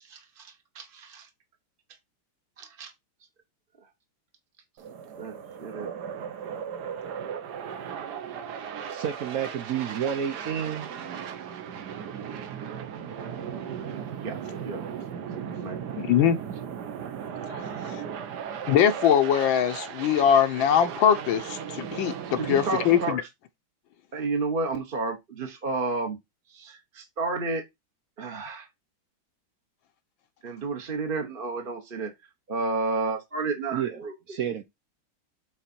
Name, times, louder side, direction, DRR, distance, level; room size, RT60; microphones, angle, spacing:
voice 1, 0.0-1.3 2.6-2.9 5.2-5.9 14.2-14.8 15.3-16.4 22.3-23.2 24.1-26.2 26.5-27.6 28.2-28.7 30.4-32.1 32.5-34.4, right 3 dB, 35° right, 0.9 m, -32 dB
sound 1, 4.8-23.1, right 8 dB, 60° right, 1.3 m, -37 dB
voice 2, 8.9-10.9 33.7-34.6, right 9 dB, 80° right, 0.7 m, -30 dB
voice 3, 16.0-16.4 17.5-18.0 18.7-23.2, left 9 dB, 70° left, 1.4 m, -22 dB
8.1 x 4.1 x 4.3 m
omnidirectional pair, 2.4 m